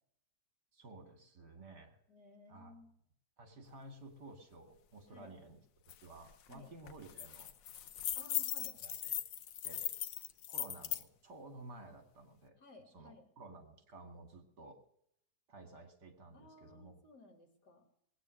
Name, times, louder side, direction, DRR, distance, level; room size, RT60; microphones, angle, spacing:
voice 1, 0.7-2.0 2.5-2.8 3.4-5.6 6.0-7.5 8.8-9.2 9.6-9.9 10.5-12.6 12.9-14.8 15.5-17.0, right 2 dB, 65° right, 4 dB, 2.7 m, -54 dB
voice 2, 2.1-2.9 5.1-5.3 6.5-6.7 8.1-8.8 12.6-13.3 16.3-17.8, left 3 dB, 65° left, 3 dB, 3.2 m, -58 dB
sound 1, 5.9-6.0 6.3-6.5 6.9-11.0, left 11 dB, 85° left, 1.5 m, -39 dB
19.5 x 9.0 x 6.4 m, 0.73 s
omnidirectional pair, 1.9 m